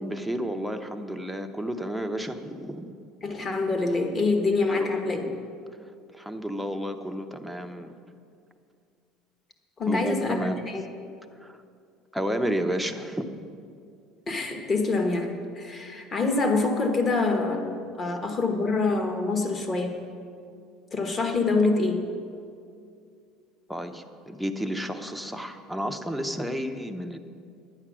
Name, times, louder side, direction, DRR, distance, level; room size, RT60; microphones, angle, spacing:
voice 1, 0.0-2.9 4.7-4.9 5.3-5.4 6.1-8.0 9.9-10.7 11.4-11.6 12.1-13.3 18.1-18.2 23.7-27.2, equal, ahead, 8 dB, 0.7 m, -31 dB
voice 2, 3.2-5.2 9.8-10.8 14.3-15.3 15.5-20.0 20.9-22.0, left 3 dB, 25° left, 5 dB, 1.3 m, -25 dB
11.0 x 8.8 x 6.2 m, 2.4 s
cardioid pair, 130°, 0 cm